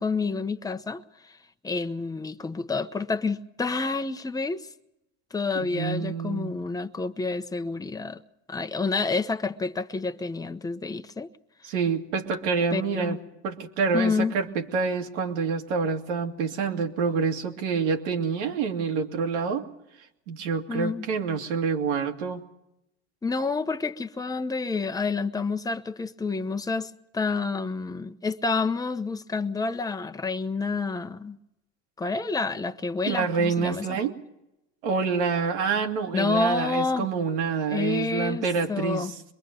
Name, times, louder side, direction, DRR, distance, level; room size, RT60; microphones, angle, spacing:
voice 1, 0.0-1.4 1.6-4.7 5.3-8.2 8.5-11.3 12.7-13.2 13.9-14.3 20.7-21.0 23.2-31.4 32.0-34.0 36.1-37.1 37.7-39.1, left 4 dB, 10° left, 0.9 m, -29 dB
voice 2, 5.5-6.5 11.6-13.2 13.4-19.6 20.3-22.4 33.1-34.1 34.8-39.1, right 5 dB, 80° right, 2.3 m, -27 dB
24.0 x 22.5 x 5.3 m
supercardioid pair, 85°, 34 cm